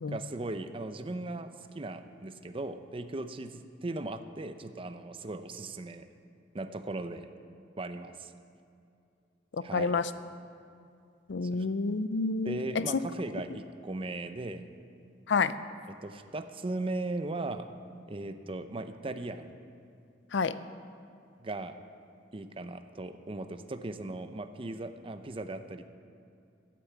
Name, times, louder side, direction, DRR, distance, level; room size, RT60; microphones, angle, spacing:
voice 1, 0.1-6.1 6.5-7.3 7.8-8.3 9.6-9.9 12.4-14.7 15.9-17.7 18.1-19.5 21.4-21.8 22.3-25.9, right 2 dB, 30° right, 8 dB, 0.6 m, -38 dB
voice 2, 9.7-10.1 11.3-12.8 15.3-15.6 20.3-20.6, left 4 dB, 70° left, 14 dB, 0.5 m, -29 dB
11.5 x 9.2 x 8.5 m, 2.5 s
head